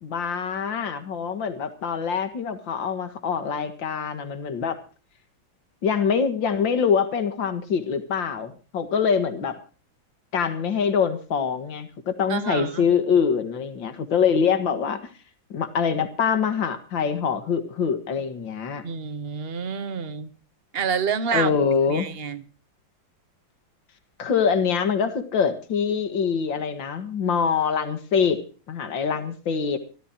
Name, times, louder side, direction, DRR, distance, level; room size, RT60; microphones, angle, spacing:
voice 1, 0.0-4.8 5.8-9.6 10.3-15.0 15.5-18.8 21.3-22.1 24.2-29.8, left 6 dB, 65° left, 2.5 m, -24 dB
voice 2, 12.3-12.9 18.8-20.3 20.7-21.5 21.9-22.4, right 6 dB, 40° right, 1.0 m, -28 dB
25.0 x 14.0 x 2.9 m
omnidirectional pair, 2.2 m